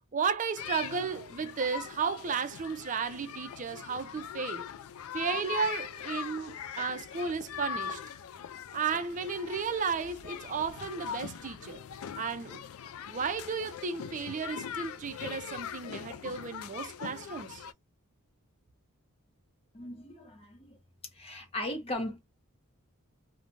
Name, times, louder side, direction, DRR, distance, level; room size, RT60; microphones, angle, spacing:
voice 1, 0.1-4.7 5.1-8.0 8.7-11.8 12.1-12.6 13.1-17.6, right 5 dB, 35° right, 0.4 m, -34 dB
sound 1, 0.6-17.7, left 8 dB, 70° left, 0.3 m, -41 dB
voice 2, 19.7-20.8 21.1-22.2, left 1 dB, 25° left, 0.6 m, -37 dB
3.1 x 2.1 x 2.5 m
head